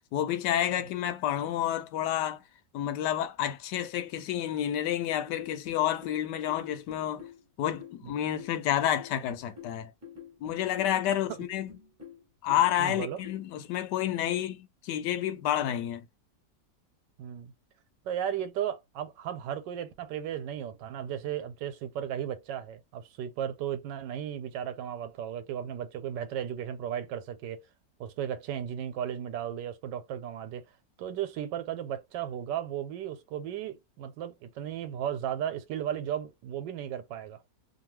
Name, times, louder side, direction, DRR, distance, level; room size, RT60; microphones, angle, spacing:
voice 1, 0.1-2.4 2.7-7.3 7.6-9.9 10.4-11.7 12.4-16.0, left 11 dB, 75° left, 1.2 m, -29 dB
sound 1, 5.2-13.5, left 7 dB, 15° right, 0.7 m, -48 dB
voice 2, 12.8-13.2 17.2-17.5 18.0-27.6 28.0-30.6 31.0-37.4, right 10 dB, 85° right, 1.3 m, -35 dB
2.9 x 2.3 x 3.0 m
omnidirectional pair, 1.9 m